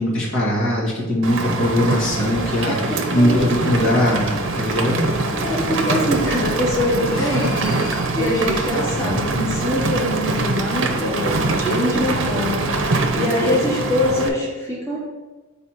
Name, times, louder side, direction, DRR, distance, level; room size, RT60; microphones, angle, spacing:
voice 1, 0.0-5.1 8.8-9.3, equal, 65° left, -6 dB, 1.8 m, -21 dB
Rain, 1.2-14.3, right 3 dB, 60° right, 0.6 m, -23 dB
sound 1, 2.0-11.1, left 1 dB, 80° left, 1.0 m, -38 dB
voice 2, 2.6-3.5 5.4-15.0, left 1 dB, 15° left, -7 dB, 1.4 m, -23 dB
4.6 x 4.1 x 5.6 m, 1.2 s
head